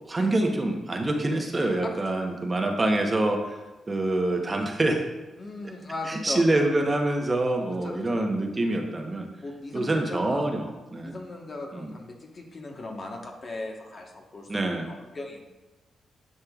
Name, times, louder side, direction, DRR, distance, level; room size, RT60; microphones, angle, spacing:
voice 1, 0.1-3.6 3.9-5.0 6.1-9.3 9.7-11.1 11.7-11.9 14.5-14.9, right 2 dB, 30° right, 3 dB, 1.0 m, -26 dB
voice 2, 5.4-6.4 7.8-8.3 9.4-10.5 11.0-15.5, left 2 dB, 45° left, 1 dB, 1.3 m, -38 dB
9.9 x 5.4 x 2.4 m, 1.1 s
cardioid pair, 65°, 0 cm